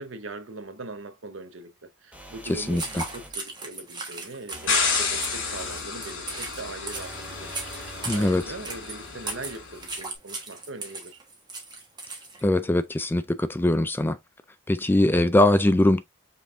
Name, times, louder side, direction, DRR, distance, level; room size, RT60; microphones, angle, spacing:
voice 1, 0.0-7.7 8.1-11.2, right 2 dB, 70° right, 0.9 m, -41 dB
sound 1, 2.1-3.4 4.5-5.9 6.9-8.4, right 1 dB, 5° right, 1.0 m, -44 dB
sound 2, 2.4-12.5, right 3 dB, 20° right, 1.3 m, -38 dB
voice 2, 2.6-3.0 8.0-8.4 12.4-14.2 14.7-16.0, left 1 dB, 10° left, 0.3 m, -21 dB
sound 3, 4.7-9.8, left 4 dB, 70° left, 2.6 m, -30 dB
5.2 x 3.9 x 2.5 m
head